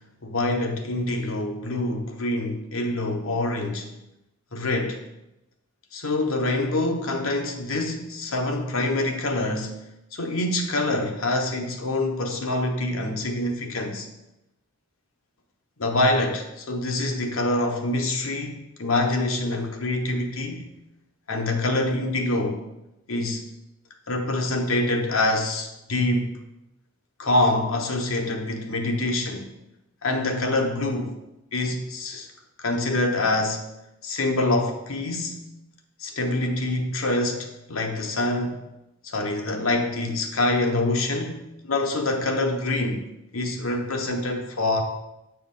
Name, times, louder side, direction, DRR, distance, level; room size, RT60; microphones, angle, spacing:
voice 1, 0.2-3.9 4.5-5.0 5.9-9.8 10.1-14.1 15.8-20.7 21.3-22.6 23.1-23.5 24.1-26.4 27.2-29.5 30.0-31.1 31.5-32.3 32.6-33.6 34.0-35.4 36.0-38.6 39.0-43.0 43.3-44.8, left 2 dB, 75° left, 3 dB, 1.0 m, -25 dB
8.0 x 4.6 x 3.8 m, 0.91 s
head